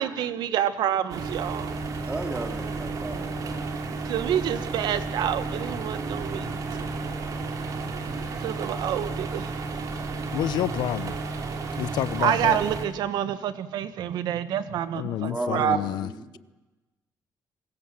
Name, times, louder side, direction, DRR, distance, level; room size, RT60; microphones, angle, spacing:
voice 1, 0.0-1.7 4.0-6.5 6.8-6.9 8.4-9.5 12.1-15.8, right 10 dB, 75° right, 11 dB, 1.5 m, -27 dB
sound 1, 1.1-12.9, right 3 dB, 55° right, 3.4 m, -32 dB
voice 2, 2.0-3.6 15.3-16.4, right 2 dB, 20° right, 3 dB, 3.3 m, -34 dB
voice 3, 10.3-11.2 11.8-12.6 15.0-16.1, left 13 dB, 85° left, 17 dB, 0.8 m, -29 dB
24.0 x 20.5 x 7.7 m, 1.1 s
cardioid pair, 135°, 7 cm